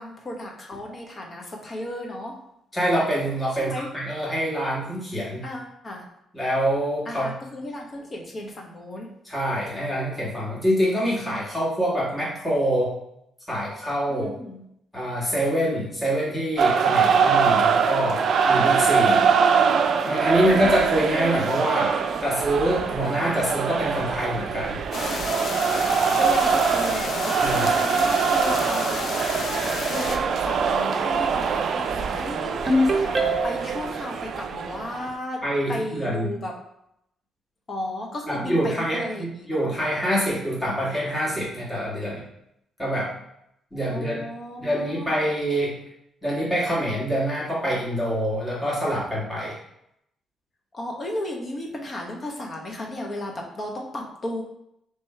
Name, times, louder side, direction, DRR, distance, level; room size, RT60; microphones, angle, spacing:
voice 1, 0.0-2.4 3.6-3.9 5.4-6.1 7.1-9.1 14.1-14.6 20.4-20.9 26.2-29.0 29.9-35.4 35.7-36.5 37.7-39.7 43.9-45.1 50.7-54.4, left 1 dB, 40° left, 0 dB, 1.1 m, -34 dB
voice 2, 2.7-5.4 6.3-7.3 9.2-12.9 13.5-14.3 14.9-19.3 20.0-21.9 22.2-24.8 27.4-27.7 35.4-36.3 38.3-42.2 42.8-43.1 43.7-44.3 44.6-45.8 46.2-49.6, equal, 10° left, -6 dB, 1.7 m, -25 dB
sound 1, 16.6-35.1, right 6 dB, 60° right, 0.4 m, -23 dB
sound 2, 24.9-30.2, left 4 dB, 55° left, 0.5 m, -31 dB
Ringtone, 32.7-33.8, equal, 30° right, 0.8 m, -22 dB
3.5 x 3.0 x 4.4 m, 0.79 s
cardioid pair, 90°, 0 cm